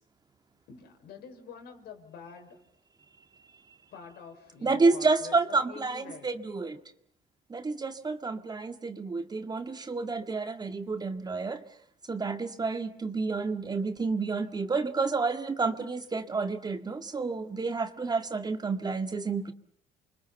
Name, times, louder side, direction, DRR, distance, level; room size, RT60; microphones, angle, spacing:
voice 1, 0.7-2.6 3.9-6.3, left 6 dB, 75° left, 5 dB, 5.8 m, -47 dB
voice 2, 4.6-6.8 7.5-11.6 12.1-19.5, right 4 dB, 25° right, 8 dB, 1.8 m, -29 dB
29.5 x 24.5 x 7.1 m, 0.64 s
cardioid pair, 110°, 17 cm